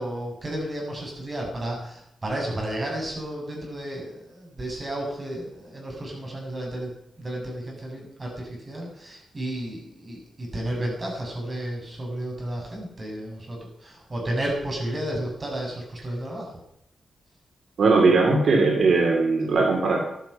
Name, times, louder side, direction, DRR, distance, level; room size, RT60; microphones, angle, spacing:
voice 1, 0.0-6.9 7.2-16.5, right 1 dB, 30° right, -1 dB, 7.1 m, -32 dB
voice 2, 17.8-20.0, right 3 dB, 70° right, 1 dB, 3.1 m, -19 dB
15.5 x 12.0 x 5.8 m, 0.78 s
wide cardioid pair, 120°, 0 cm